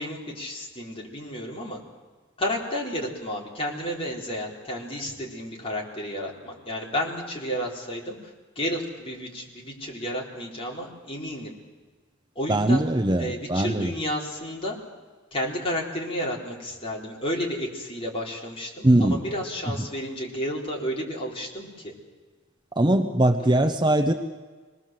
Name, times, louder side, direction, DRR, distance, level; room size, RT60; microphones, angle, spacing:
voice 1, 0.0-1.8 2.4-8.2 8.6-11.5 12.4-12.9 13.2-14.8 15.3-21.9, equal, 25° left, -2 dB, 4.0 m, -31 dB
voice 2, 12.5-13.9 18.8-19.2 22.7-24.1, right 1 dB, 20° right, 6 dB, 0.9 m, -21 dB
26.0 x 19.5 x 7.6 m, 1.4 s
head